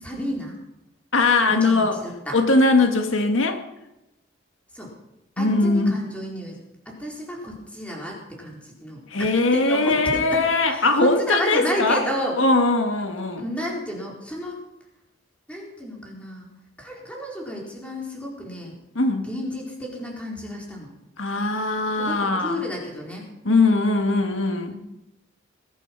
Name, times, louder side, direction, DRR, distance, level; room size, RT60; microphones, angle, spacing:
voice 1, 0.0-0.6 1.5-2.4 4.7-4.9 5.4-6.6 6.9-12.4 13.4-14.6 15.5-16.5 16.8-18.8 19.2-20.9 22.0-23.3 24.7-24.8, equal, 5° left, -2 dB, 4.3 m, -31 dB
voice 2, 1.1-2.0 2.3-3.6 5.4-6.0 9.1-12.0 12.4-13.4 19.0-19.3 21.2-22.6 23.5-24.7, left 3 dB, 80° left, 6 dB, 1.8 m, -20 dB
20.5 x 11.5 x 6.0 m, 0.91 s
head